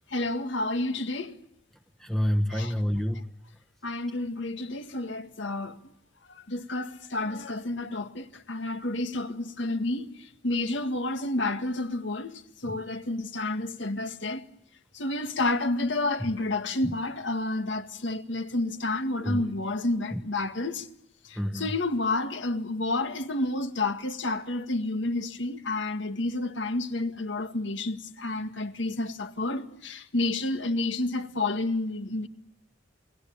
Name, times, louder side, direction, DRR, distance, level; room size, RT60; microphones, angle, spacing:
voice 1, 0.1-1.4 2.5-2.7 3.8-5.8 6.3-14.4 14.9-20.9 21.2-32.3, left 2 dB, 65° left, 1.9 m, -30 dB
voice 2, 2.0-3.3 12.6-12.8 16.8-16.9 19.2-19.5 20.1-20.2 21.3-21.7, equal, ahead, 1.2 m, -28 dB
28.5 x 20.5 x 8.7 m
head